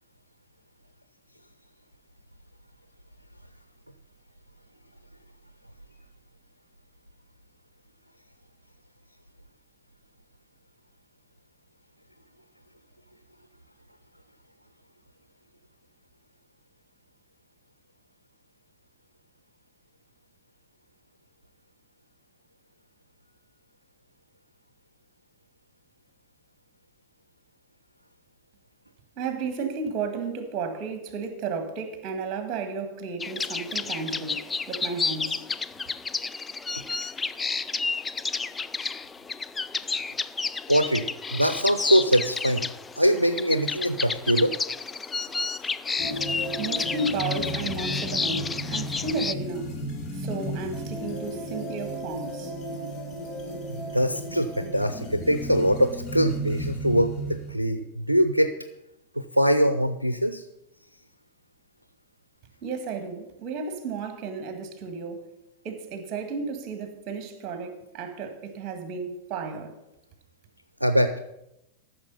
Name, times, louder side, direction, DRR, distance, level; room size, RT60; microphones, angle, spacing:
voice 1, 29.2-35.4 46.6-49.8 50.1-52.5 62.6-65.3 65.6-69.7, right 4 dB, 35° right, 1.8 m, -33 dB
sound 1, 33.2-49.3, left 4 dB, 15° left, 0.4 m, -31 dB
voice 2, 40.7-42.7 43.0-44.5 53.7-58.5 59.1-60.4 70.8-71.3, equal, 85° right, 0.6 m, -23 dB
sound 2, 46.0-57.5, right 1 dB, 30° left, 2.0 m, -34 dB
14.0 x 6.4 x 5.5 m
figure-of-eight pair, 90°, 0 cm